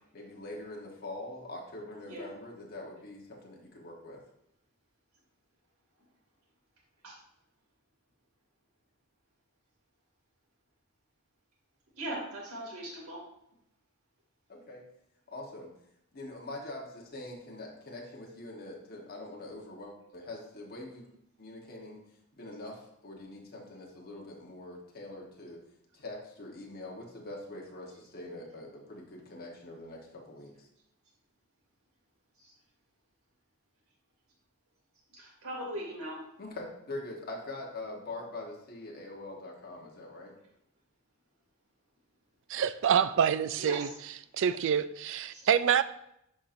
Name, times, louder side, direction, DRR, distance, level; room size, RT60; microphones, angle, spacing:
voice 1, 0.1-4.2 14.5-14.8 15.3-15.7 16.1-21.1 21.4-22.0 22.4-25.6 25.9-30.7 36.4-40.3, left 2 dB, 45° left, -1 dB, 1.2 m, -43 dB
voice 2, 12.0-13.2 32.4-32.5 35.1-36.2 43.6-43.9 44.4-44.5 45.3-45.4, right 1 dB, 85° right, -3 dB, 2.4 m, -39 dB
voice 3, 42.5-43.9 44.4-45.8, right 8 dB, 60° right, 15 dB, 0.3 m, -26 dB
10.5 x 4.3 x 2.6 m, 0.78 s
head